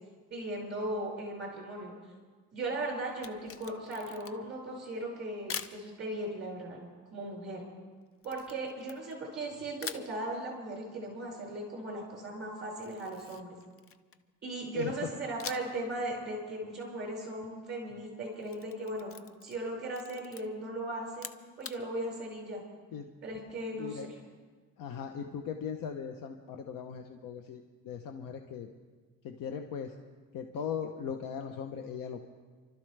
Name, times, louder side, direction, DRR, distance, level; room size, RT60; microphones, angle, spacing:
voice 1, 0.3-1.9 2.5-6.8 7.1-7.6 8.2-13.5 14.4-19.1 19.4-21.3 21.6-22.6 23.2-24.0, right 1 dB, 35° right, -2 dB, 5.4 m, -37 dB
Camera, 3.1-4.6 5.5-5.8 8.2-9.4 9.8-10.1 12.8-14.3 15.4-15.8 16.2-16.3 18.2-19.6 19.9-20.4 21.1-21.8, left 7 dB, 40° left, 0.6 m, -44 dB
voice 2, 24.8-28.7 29.2-29.9 30.3-32.2, left 7 dB, 80° left, 5 dB, 0.9 m, -39 dB
29.0 x 13.0 x 3.4 m, 1.4 s
cardioid pair, 140°, 33 cm